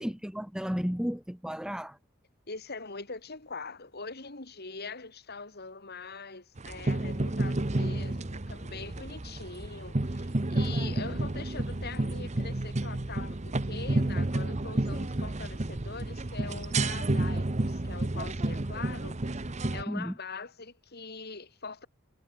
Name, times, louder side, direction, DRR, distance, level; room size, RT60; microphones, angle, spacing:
voice 1, 0.0-2.0 19.9-20.1, equal, 5° right, 0.7 m, -33 dB
voice 2, 2.5-19.2 19.7-21.9, left 4 dB, 45° left, 2.8 m, -43 dB
sound 1, 6.6-19.8, right 2 dB, 30° right, 0.9 m, -31 dB
head